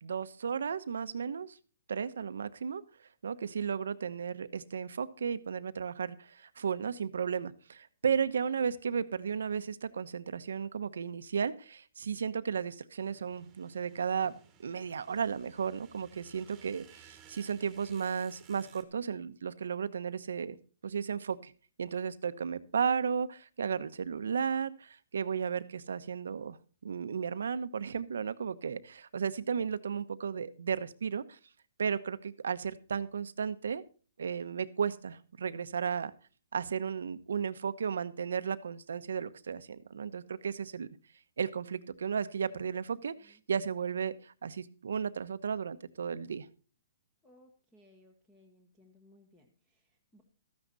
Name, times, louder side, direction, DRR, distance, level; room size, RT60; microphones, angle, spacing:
voice 1, 0.0-1.6 1.9-2.8 3.2-14.3 14.6-20.6 20.8-21.5 21.8-26.6 26.8-31.4 31.8-33.8 34.2-36.1 36.5-40.9 41.4-46.5, right 6 dB, 90° right, 13 dB, 1.0 m, -34 dB
sound 1, 13.0-18.8, right 8 dB, 15° right, 1.5 m, -59 dB
voice 2, 42.5-43.4 47.2-50.2, left 1 dB, 10° left, 3 dB, 1.3 m, -63 dB
13.5 x 9.8 x 4.0 m, 0.36 s
hypercardioid pair, 170°, 0 cm